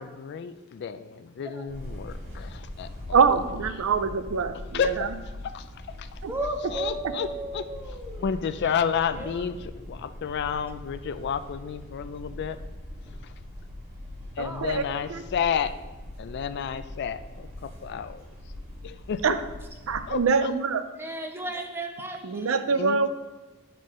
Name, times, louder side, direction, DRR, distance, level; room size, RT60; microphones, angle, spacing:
voice 1, 0.0-3.2 3.7-3.9 4.7-5.1 5.5-7.7 8.2-12.6 13.2-13.3 14.4-15.8 16.2-18.2 18.8-19.4 20.1-20.5 22.7-23.1, left 7 dB, 55° left, 11 dB, 0.3 m, -31 dB
sound 1, 1.7-20.3, left 1 dB, 35° right, 1.7 m, -42 dB
voice 2, 3.1-5.1 6.2-6.3 14.4-14.8 15.1-15.2 19.2-19.4 19.9-20.8 22.2-23.1, right 5 dB, 70° right, 10 dB, 0.5 m, -24 dB
voice 3, 6.3-8.3 8.6-8.7 9.1-9.5 14.4-15.2 21.0-22.6, right 2 dB, 10° right, 3 dB, 0.7 m, -35 dB
10.5 x 4.3 x 3.1 m, 1.2 s
head